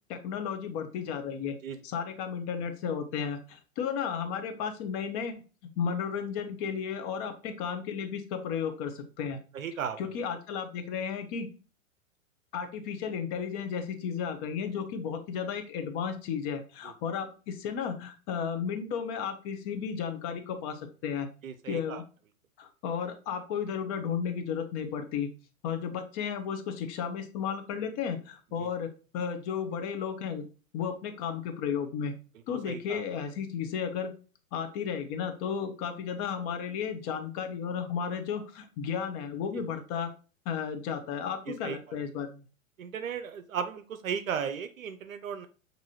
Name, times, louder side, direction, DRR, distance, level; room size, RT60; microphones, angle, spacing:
voice 1, 0.1-1.6 1.8-5.4 5.8-9.4 10.0-11.5 12.5-21.3 21.7-22.0 22.6-25.3 25.6-28.9 29.1-30.4 30.7-32.1 32.5-34.1 34.5-40.1 40.5-42.4, left 7 dB, 30° left, 7 dB, 0.6 m, -33 dB
voice 2, 9.5-10.0 21.4-22.0 28.6-28.7 32.7-33.0 41.5-41.8 42.8-45.5, right 7 dB, 70° right, 8 dB, 0.6 m, -35 dB
5.9 x 2.7 x 2.7 m, 0.35 s
figure-of-eight pair, 105°, 41 cm